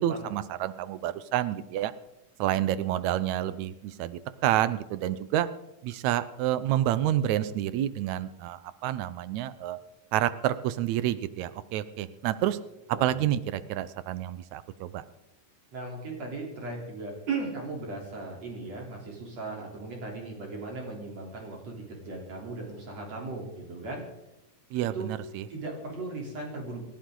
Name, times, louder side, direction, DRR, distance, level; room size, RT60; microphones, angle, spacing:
voice 1, 0.0-1.9 2.4-5.5 5.8-9.8 10.1-12.6 12.9-15.0 24.7-25.5, right 12 dB, 75° right, 14 dB, 1.8 m, -29 dB
voice 2, 15.7-24.0 24.8-25.1 25.5-26.8, right 3 dB, 50° right, -1 dB, 4.6 m, -37 dB
28.5 x 11.5 x 3.9 m, 0.89 s
omnidirectional pair, 3.8 m